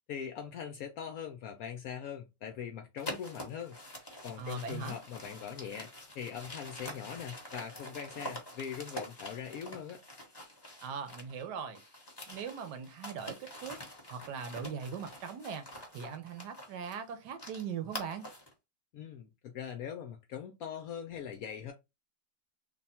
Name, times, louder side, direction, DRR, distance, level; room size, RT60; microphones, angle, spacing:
voice 1, 0.1-3.8 4.2-5.9 6.1-10.0 18.9-21.7, left 8 dB, 70° left, 0.8 m, -41 dB
sound 1, 3.0-11.4 11.7-18.5, left 1 dB, 20° left, 0.8 m, -46 dB
voice 2, 4.4-5.0 10.8-11.8 12.3-13.8 14.1-15.6 15.9-18.3, right 6 dB, 70° right, 1.3 m, -40 dB
3.4 x 2.2 x 4.2 m
omnidirectional pair, 1.9 m